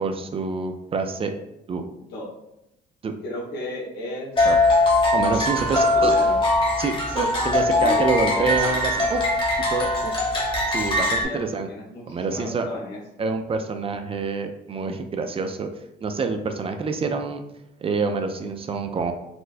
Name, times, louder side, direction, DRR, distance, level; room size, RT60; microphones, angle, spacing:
voice 1, 0.0-1.3 1.7-1.8 3.0-3.2 4.4-4.6 5.1-6.1 6.8-9.2 9.7-10.2 10.7-11.7 12.1-12.7 13.2-15.7 16.0-17.4 17.8-19.1, right 4 dB, 35° right, 6 dB, 0.4 m, -26 dB
voice 2, 3.2-4.3 5.8-6.3 7.3-8.8 11.2-13.0, left 2 dB, 90° left, -2 dB, 1.0 m, -34 dB
sound 1, 4.4-11.2, left 2 dB, 30° left, 1.1 m, -21 dB
4.3 x 2.1 x 2.5 m, 0.86 s
cardioid pair, 85°, 17 cm